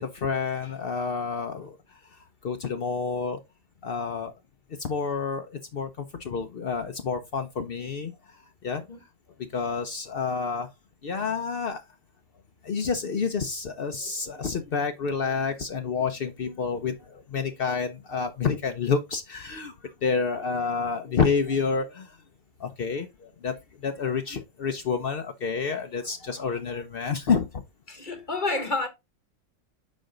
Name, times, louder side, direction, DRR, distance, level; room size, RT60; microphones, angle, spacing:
voice 1, 0.0-1.8 2.4-3.4 3.8-4.3 4.8-8.1 8.6-8.8 9.4-10.7 11.0-11.8 12.6-22.2 22.6-23.6 23.8-27.6, left 5 dB, 70° left, 0.5 m, -29 dB
voice 2, 27.9-28.9, left 3 dB, 35° left, 0.9 m, -29 dB
7.4 x 5.1 x 3.8 m
omnidirectional pair, 1.9 m